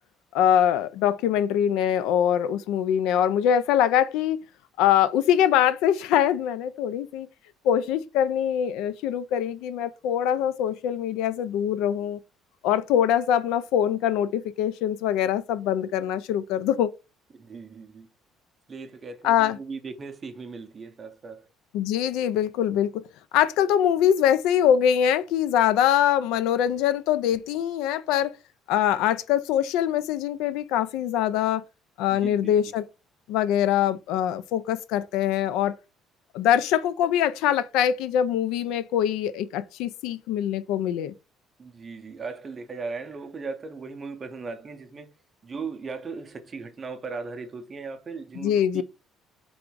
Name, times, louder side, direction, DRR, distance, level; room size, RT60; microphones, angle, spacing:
voice 1, 0.3-4.4 4.8-7.3 7.6-12.2 12.6-16.9 19.2-19.6 21.7-23.0 23.3-28.3 28.7-31.6 32.0-32.8 33.3-35.8 36.3-41.1 48.4-48.8, left 10 dB, 90° left, 0.3 m, -23 dB
voice 2, 17.3-18.1 18.7-21.5 32.1-32.5 41.6-45.1 45.4-48.8, right 4 dB, 20° right, 0.5 m, -38 dB
3.5 x 2.5 x 4.5 m
cardioid pair, 180°, 0 cm